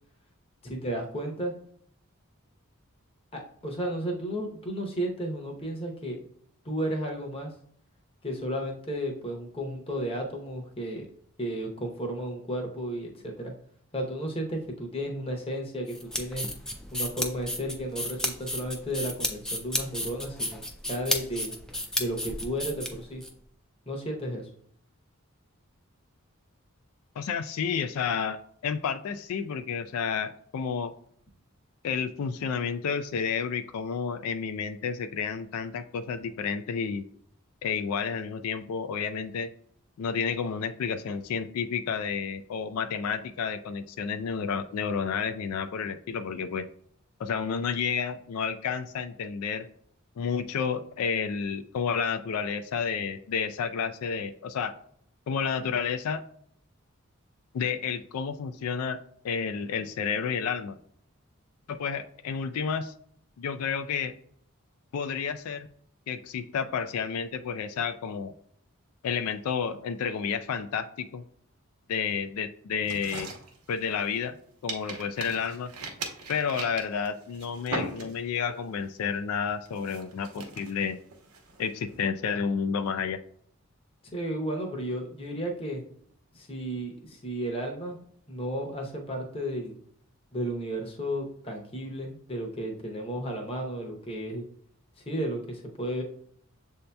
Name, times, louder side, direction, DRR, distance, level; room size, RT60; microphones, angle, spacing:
voice 1, 0.6-1.5 3.3-6.2 6.6-7.5 8.2-11.0 11.4-13.5 13.9-16.5 16.9-20.6 20.9-21.5 22.0-23.2 23.9-24.5 84.1-85.8 86.3-88.0 88.3-89.8 90.3-94.4 95.1-96.0, equal, 25° left, 1 dB, 0.7 m, -33 dB
sound 1, 15.9-23.3, left 1 dB, 5° left, 0.3 m, -32 dB
voice 2, 27.2-30.9 31.8-37.0 37.6-39.5 40.0-46.7 47.2-49.7 50.2-54.7 55.3-56.2 57.5-59.0 59.2-60.8 61.7-62.9 63.4-64.1 64.9-65.7 66.1-68.3 69.0-71.2 71.9-73.3 73.7-74.4 74.6-75.7 76.3-81.0 81.6-83.2, left 6 dB, 85° left, 8 dB, 0.3 m, -30 dB
sound 2, 72.8-74.3 74.7-78.5 78.8-79.2 79.7-82.0, right 3 dB, 90° right, 0.9 m, -39 dB
7.5 x 2.7 x 2.2 m, 0.64 s
head